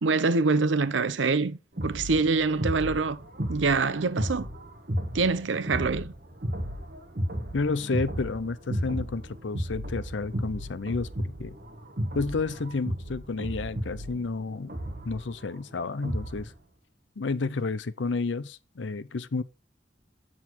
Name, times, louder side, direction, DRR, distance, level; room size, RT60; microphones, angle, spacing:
voice 1, 0.0-3.2 3.5-4.5 5.1-6.1, right 4 dB, 90° right, 0.7 m, -25 dB
sound 1, 1.8-16.5, equal, 50° right, 1.6 m, -34 dB
voice 2, 7.5-11.6 12.1-14.8 15.0-16.5 17.2-19.4, left 3 dB, 80° left, 0.6 m, -31 dB
7.4 x 6.5 x 4.5 m
head